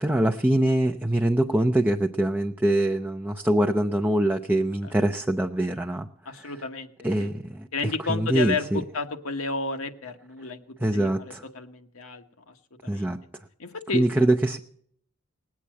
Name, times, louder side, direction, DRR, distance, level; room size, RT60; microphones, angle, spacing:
voice 1, 0.0-6.1 6.4-6.5 7.0-8.8 10.8-11.4 12.9-13.2 13.9-14.6, right 1 dB, 10° right, 5 dB, 0.5 m, -24 dB
voice 2, 6.2-6.9 7.2-7.3 7.7-12.5 12.8-13.1 13.6-14.0, left 4 dB, 70° left, 6 dB, 1.3 m, -32 dB
19.5 x 8.5 x 7.5 m, 0.64 s
head